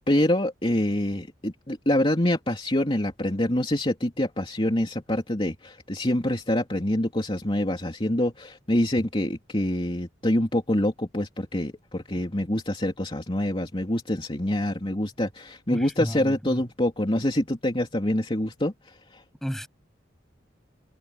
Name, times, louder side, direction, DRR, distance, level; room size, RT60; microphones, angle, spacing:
voice 1, 0.0-19.2, left 1 dB, 30° left, 3.0 m, -26 dB
voice 2, 15.7-16.6 19.4-19.7, equal, ahead, 8.0 m, -33 dB
head